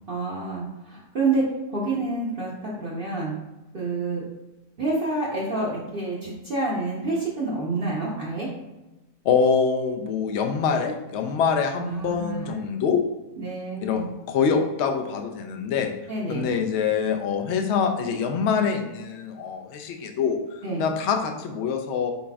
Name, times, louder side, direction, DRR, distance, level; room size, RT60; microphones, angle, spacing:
voice 1, 0.1-1.4 1.7-3.3 3.7-4.2 4.8-8.5 11.8-12.7 13.4-14.0 16.1-16.5 20.6-20.8, right 2 dB, 45° right, -6 dB, 0.9 m, -28 dB
voice 2, 9.2-13.0 13.8-15.9 16.3-20.4 20.8-22.1, left 6 dB, 65° left, 4 dB, 0.8 m, -25 dB
5.0 x 4.0 x 2.3 m, 1.0 s
omnidirectional pair, 1.4 m